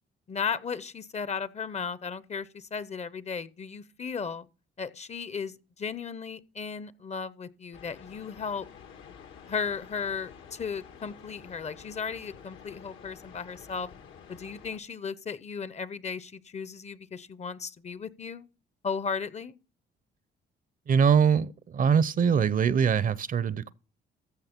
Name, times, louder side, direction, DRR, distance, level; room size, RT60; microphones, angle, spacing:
voice 1, 0.3-4.5 4.8-8.7 9.5-13.9 14.3-18.5 18.8-19.6, left 6 dB, 35° left, 0.6 m, -35 dB
sound 1, 7.7-14.8, left 7 dB, 80° left, 1.4 m, -50 dB
voice 2, 20.9-23.7, right 7 dB, 45° right, 0.6 m, -23 dB
14.0 x 6.3 x 4.4 m
cardioid pair, 90°, 20 cm